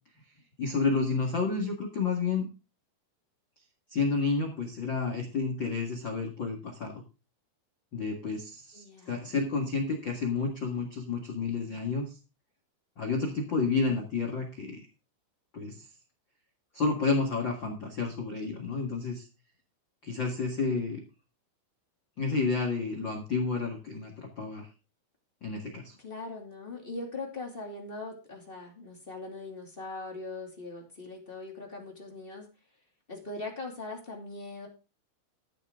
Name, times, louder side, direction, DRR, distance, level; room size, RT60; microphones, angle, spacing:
voice 1, 0.6-2.5 3.9-6.9 7.9-12.2 13.0-14.8 15.5-15.8 16.7-19.3 20.0-21.0 22.2-24.7 25.4-26.0, left 4 dB, 90° left, 3 dB, 1.0 m, -30 dB
voice 2, 8.7-9.3 26.0-32.4 33.1-34.7, left 2 dB, 20° left, 0 dB, 1.5 m, -41 dB
13.0 x 10.0 x 3.7 m, 0.30 s
omnidirectional pair, 5.4 m